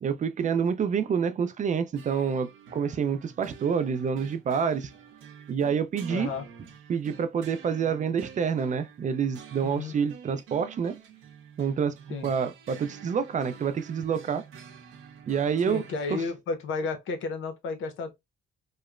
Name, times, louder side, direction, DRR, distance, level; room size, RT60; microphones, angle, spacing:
voice 1, 0.0-4.9 5.5-6.3 6.9-10.9 11.6-11.9 12.2-14.4 15.3-15.8 16.1-16.2, right 7 dB, 40° right, 0.4 m, -27 dB
sound 1, 2.0-16.3, right 7 dB, 80° right, 0.6 m, -48 dB
voice 2, 6.1-6.5 9.6-9.9 12.1-12.3 15.7-18.1, left 4 dB, 85° left, 0.7 m, -32 dB
2.9 x 2.0 x 2.3 m
cardioid pair, 90°, 20 cm